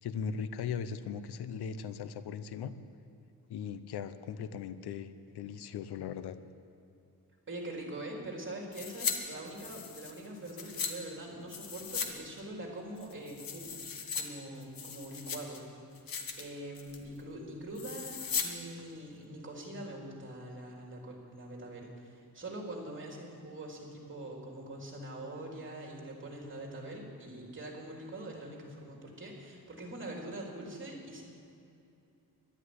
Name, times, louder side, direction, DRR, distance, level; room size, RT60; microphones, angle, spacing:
voice 1, 0.0-2.7 3.5-6.4, left 7 dB, 90° left, 12 dB, 0.8 m, -38 dB
voice 2, 7.5-13.8 14.1-15.6 16.4-31.2, right 1 dB, 30° right, 0 dB, 3.7 m, -43 dB
sound 1, 8.7-9.2 9.5-10.9 11.5-12.1 12.4-12.5 13.0-14.2 14.6-15.6 15.9-16.4 16.7-17.1 17.7-18.5 18.8-18.9, left 6 dB, 60° left, 1.7 m, -37 dB
12.0 x 11.0 x 9.7 m, 2.6 s
cardioid pair, 105°, 38 cm